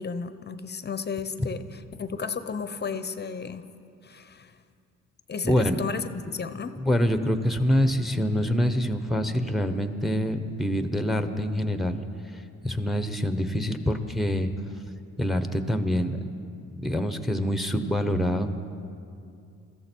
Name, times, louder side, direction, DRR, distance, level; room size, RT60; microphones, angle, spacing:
voice 1, 0.0-3.7 4.0-4.5 5.3-6.8, left 5 dB, 35° left, 11 dB, 0.8 m, -33 dB
voice 2, 5.4-5.8 6.8-12.0 12.6-14.5 15.2-16.3 16.8-18.6, equal, ahead, 8 dB, 1.1 m, -25 dB
22.0 x 14.5 x 4.6 m, 2.5 s
cardioid pair, 90°, 30 cm